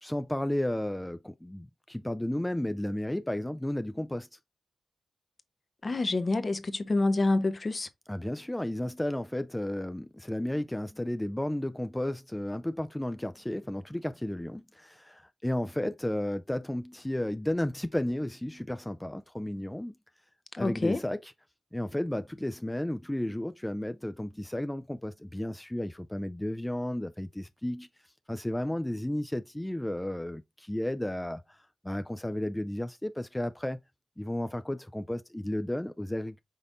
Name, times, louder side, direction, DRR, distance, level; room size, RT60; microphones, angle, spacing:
voice 1, 0.0-4.3 8.1-20.0 20.6-21.3 21.7-27.9 28.3-33.8 34.2-36.4, left 1 dB, 15° left, 0.3 m, -33 dB
voice 2, 5.8-7.9 20.5-21.0, left 2 dB, 50° left, 0.6 m, -27 dB
5.3 x 3.9 x 2.5 m
cardioid pair, 40°, 0 cm